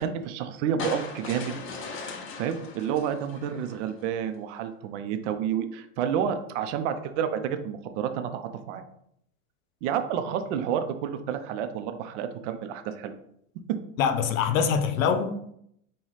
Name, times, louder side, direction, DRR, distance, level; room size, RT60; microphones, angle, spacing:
voice 1, 0.0-1.6 2.4-8.8 9.8-13.1, right 8 dB, 65° right, 8 dB, 0.6 m, -30 dB
sound 1, 0.8-4.0, left 4 dB, 30° left, 0.7 m, -38 dB
voice 2, 14.0-15.3, left 7 dB, 90° left, 9 dB, 0.7 m, -24 dB
5.6 x 2.3 x 3.1 m, 0.73 s
supercardioid pair, 120°, 39 cm